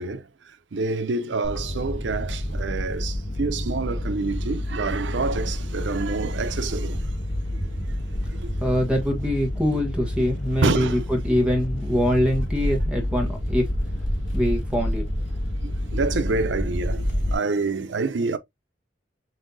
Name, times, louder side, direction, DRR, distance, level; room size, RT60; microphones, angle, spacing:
voice 1, 0.0-7.1 7.5-7.6 7.9-8.0 8.3-8.6 10.6-11.0 15.6-18.4, right 3 dB, 85° right, 0.6 m, -27 dB
sound 1, 1.4-17.3, left 1 dB, 75° left, 1.4 m, -28 dB
voice 2, 8.6-13.7 14.3-15.0, equal, 5° right, 1.1 m, -23 dB
5.7 x 2.7 x 2.6 m
head